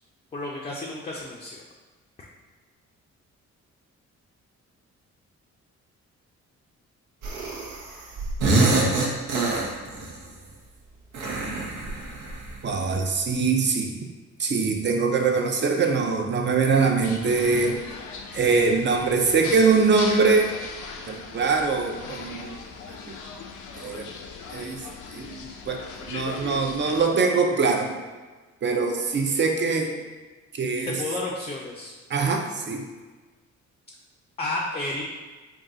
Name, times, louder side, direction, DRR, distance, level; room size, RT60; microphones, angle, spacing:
voice 1, 0.3-1.6 30.9-31.9 34.4-35.0, left 2 dB, 20° left, -3 dB, 0.5 m, -31 dB
sound 1, 7.2-10.1 11.1-12.6, right 2 dB, 85° right, 0.8 m, -25 dB
voice 2, 12.6-13.9 14.4-17.8 18.3-20.5 21.1-22.6 22.9-23.2 23.8-24.1 24.5-24.8 25.1-28.0 28.6-29.9 30.5-31.0 32.1-32.8, right 4 dB, 40° right, 3 dB, 0.5 m, -23 dB
sound 2, 17.0-27.1, left 5 dB, 85° left, 0.5 m, -39 dB
3.7 x 2.3 x 3.8 m, 1.3 s
cardioid pair, 100°, 29 cm